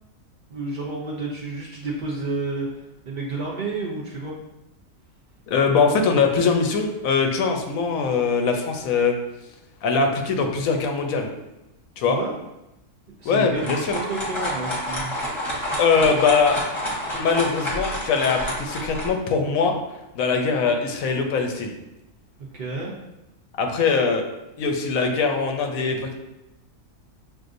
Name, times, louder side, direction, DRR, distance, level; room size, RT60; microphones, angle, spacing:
voice 1, 0.5-4.3 12.0-12.3 13.2-15.7 22.5-22.9, right 3 dB, 75° right, -3 dB, 0.4 m, -31 dB
voice 2, 5.5-9.1 9.8-11.3 12.0-12.2 13.2-13.8 15.8-16.6 17.1-19.7 20.1-21.7 23.6-24.3 24.6-26.1, left 5 dB, 70° left, 4 dB, 0.9 m, -22 dB
sound 1, 13.3-19.1, equal, 25° left, 0.8 m, -29 dB
6.0 x 2.5 x 2.5 m, 0.93 s
omnidirectional pair, 1.6 m